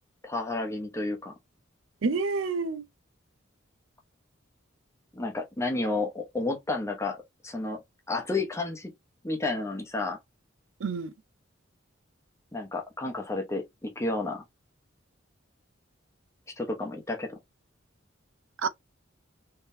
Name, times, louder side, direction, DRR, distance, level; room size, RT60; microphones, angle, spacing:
voice 1, 0.2-1.3 5.1-7.8 8.1-8.9 9.2-10.2 12.5-14.4 16.6-17.4, left 2 dB, 15° left, 0.9 m, -31 dB
voice 2, 2.0-2.8 10.8-11.1 18.6-18.7, right 4 dB, 80° right, 0.5 m, -28 dB
3.6 x 3.2 x 2.6 m
head